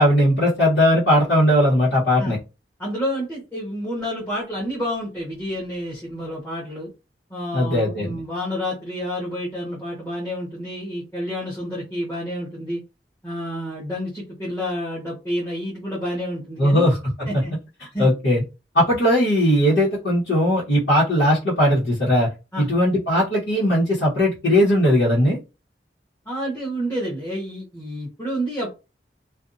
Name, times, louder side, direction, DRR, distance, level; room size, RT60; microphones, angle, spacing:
voice 1, 0.0-2.4 7.5-8.2 16.6-17.4 18.0-18.4 18.7-22.3 22.6-25.4, equal, 90° left, -9 dB, 1.1 m, -18 dB
voice 2, 2.8-6.9 7.3-12.8 13.2-16.9 17.3-17.5 17.9-18.1 22.5-22.7 26.3-28.7, equal, 15° left, -7 dB, 0.9 m, -29 dB
2.5 x 2.2 x 2.5 m, 0.29 s
head